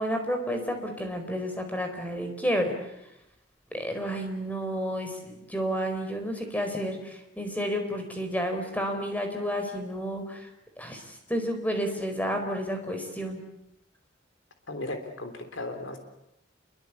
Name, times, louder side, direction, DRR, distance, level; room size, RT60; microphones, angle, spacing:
voice 1, 0.0-2.7 3.7-10.5 10.8-13.4, equal, 10° left, 5 dB, 4.5 m, -31 dB
voice 2, 14.7-16.0, left 2 dB, 70° left, 6 dB, 3.4 m, -36 dB
28.0 x 23.0 x 8.4 m, 0.87 s
head